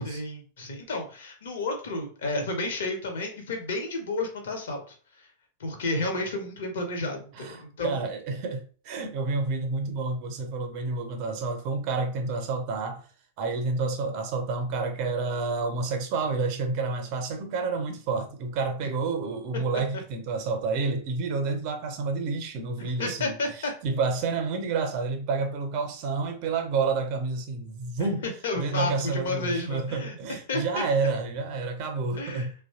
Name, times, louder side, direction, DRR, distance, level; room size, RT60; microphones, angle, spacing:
voice 1, 0.0-4.8 5.1-5.3 5.6-8.1 19.7-20.0 22.8-23.7 28.0-28.1 28.4-30.8 32.1-32.5, left 2 dB, 60° left, 0.8 m, -32 dB
voice 2, 7.4-13.0 13.4-28.3 28.5-32.5, right 4 dB, 45° right, 0.6 m, -29 dB
2.9 x 2.1 x 2.8 m
figure-of-eight pair, 90°, 0 cm